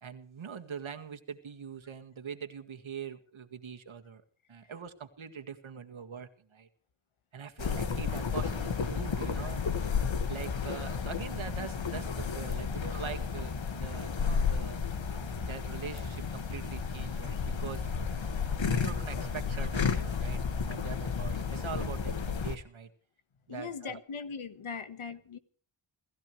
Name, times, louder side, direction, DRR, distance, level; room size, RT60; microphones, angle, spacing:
voice 1, 0.0-4.2 4.5-6.7 7.3-9.6 10.3-12.1 12.3-14.8 15.4-17.9 18.6-22.1 22.4-22.9 23.5-24.0, right 7 dB, 75° right, 2.0 m, -43 dB
sound 1, 7.6-22.6, left 5 dB, 70° left, 1.9 m, -32 dB
voice 2, 23.5-25.4, left 5 dB, 85° left, 1.6 m, -40 dB
29.5 x 15.0 x 3.3 m
cardioid pair, 60°, 48 cm